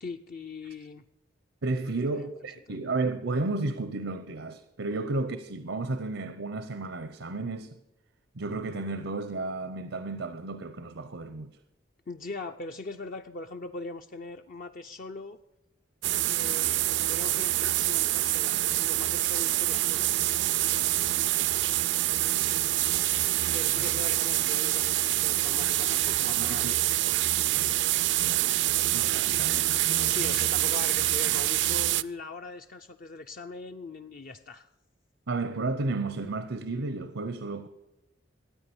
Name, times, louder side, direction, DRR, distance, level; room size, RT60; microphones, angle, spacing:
voice 1, 0.0-1.0 1.9-2.3 2.7-2.8 12.1-15.4 16.3-20.1 23.5-26.9 30.1-34.7, left 3 dB, 45° left, 0.5 m, -41 dB
voice 2, 1.6-7.7 8.3-11.6 22.4-22.7 23.8-23.9 26.0-27.7 28.2-30.5 35.3-37.7, right 3 dB, 85° right, 0.8 m, -33 dB
sound 1, 16.0-32.0, right 15 dB, 65° right, 0.4 m, -26 dB
13.5 x 9.3 x 7.0 m
head